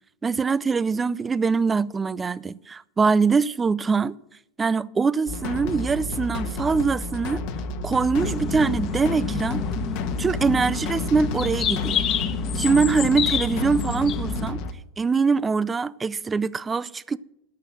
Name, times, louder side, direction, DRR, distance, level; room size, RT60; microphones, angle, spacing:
voice 1, 0.2-4.2 4.6-7.4 7.8-9.7 10.2-12.1 12.5-14.6 15.0-17.2, right 5 dB, 20° right, 0.5 m, -23 dB
sound 1, 5.3-14.7, left 3 dB, 60° left, 1.4 m, -32 dB
sound 2, 8.2-14.5, left 6 dB, 40° left, 1.4 m, -28 dB
11.5 x 6.7 x 7.5 m
hypercardioid pair, 100°, 0 cm